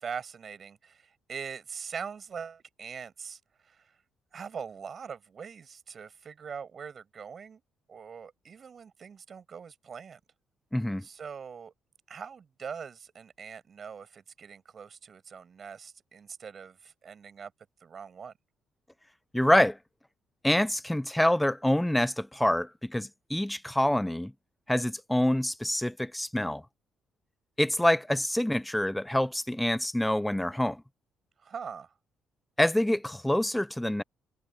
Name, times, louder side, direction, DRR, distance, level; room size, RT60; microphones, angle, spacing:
voice 1, 0.0-3.8 4.3-7.6 7.9-10.2 11.0-11.7 12.1-17.5 17.8-18.3 31.4-31.9, right 6 dB, 40° right, 7.8 m, -42 dB
voice 2, 10.7-11.0 19.3-19.8 20.4-24.3 24.7-26.6 27.6-30.8 32.6-34.0, left 1 dB, 5° left, 0.3 m, -26 dB
cardioid pair, 140°, 0 cm